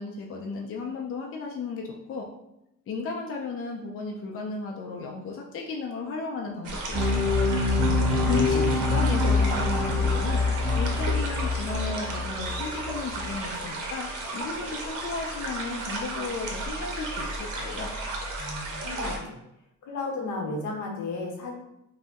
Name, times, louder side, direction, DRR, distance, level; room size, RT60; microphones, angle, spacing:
voice 1, 0.0-2.3 2.9-7.5 8.3-10.4 10.7-14.1 14.3-17.9, left 4 dB, 45° left, 0 dB, 0.4 m, -34 dB
sound 1, 6.6-19.2, right 2 dB, 80° right, 0.7 m, -34 dB
sound 2, 6.9-13.3, left 3 dB, 10° left, 1.0 m, -25 dB
voice 2, 7.7-8.7 18.4-19.4 19.8-21.5, left 3 dB, 75° left, 0 dB, 0.8 m, -34 dB
2.6 x 2.0 x 3.5 m, 0.84 s
cardioid pair, 90°, 30 cm